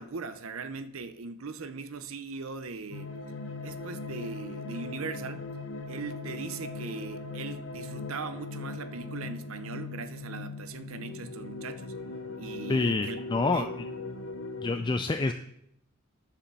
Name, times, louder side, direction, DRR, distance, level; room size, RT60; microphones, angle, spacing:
voice 1, 0.0-3.1 3.6-5.5 5.9-11.9 12.4-13.2 13.5-13.7, right 4 dB, 75° right, 0.7 m, -39 dB
sound 1, 2.9-14.7, left 3 dB, 65° left, 0.8 m, -39 dB
voice 2, 12.7-13.7 14.6-15.3, left 3 dB, 20° left, 0.3 m, -27 dB
10.0 x 5.0 x 6.8 m
head